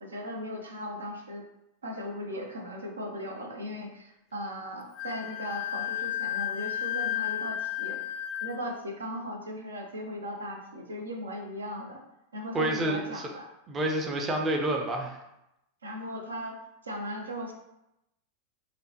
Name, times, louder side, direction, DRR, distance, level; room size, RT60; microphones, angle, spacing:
voice 1, 0.0-1.4 1.8-8.0 8.4-12.0 12.3-13.5 15.8-16.6 16.8-17.5, equal, 75° right, 3 dB, 0.6 m, -37 dB
Wind instrument woodwind instrument, 5.0-8.7, left 12 dB, 35° left, 0.4 m, -33 dB
voice 2, 12.5-13.3 13.7-15.2, right 1 dB, 25° right, 2 dB, 0.6 m, -29 dB
5.0 x 2.2 x 2.9 m, 0.87 s
figure-of-eight pair, 90°, 0 cm